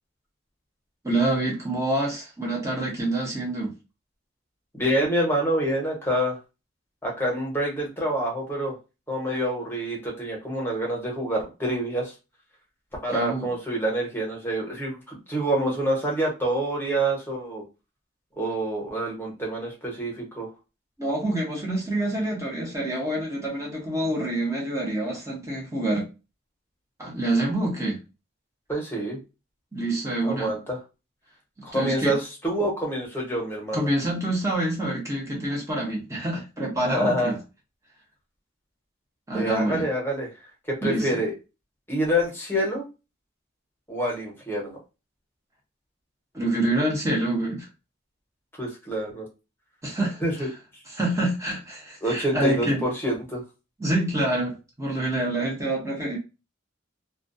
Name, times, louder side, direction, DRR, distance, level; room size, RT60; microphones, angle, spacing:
voice 1, 1.0-3.7 13.1-13.5 21.0-26.1 27.0-28.0 29.7-30.5 31.7-32.1 33.7-37.4 39.3-39.9 40.8-41.1 46.3-47.7 49.8-50.5 50.9-52.8 53.8-56.2, right 1 dB, 15° right, 0.7 m, -26 dB
voice 2, 4.7-6.4 7.0-8.7 9.1-12.1 13.0-17.6 18.4-20.5 28.7-29.2 30.2-30.8 31.6-33.9 36.8-37.3 39.3-40.3 40.7-41.3 41.9-42.8 43.9-44.8 48.6-49.3 50.2-50.5 52.0-53.4, right 1 dB, 10° left, 0.9 m, -27 dB
2.2 x 2.2 x 2.6 m
head